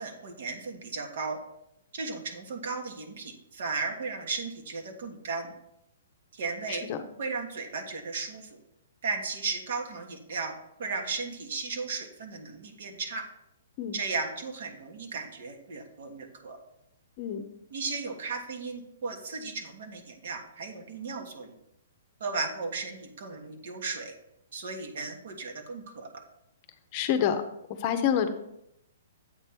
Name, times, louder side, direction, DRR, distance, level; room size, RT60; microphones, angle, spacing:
voice 1, 0.0-1.4 1.9-5.5 6.3-6.9 7.2-8.6 9.0-10.5 10.8-13.2 13.9-16.6 17.7-21.6 22.2-24.1 24.5-26.1, right 4 dB, 60° right, 4 dB, 1.4 m, -35 dB
voice 2, 26.9-27.4 27.8-28.3, left 9 dB, 35° left, 8 dB, 0.7 m, -27 dB
8.1 x 3.3 x 5.9 m, 0.79 s
hypercardioid pair, 150°, 0 cm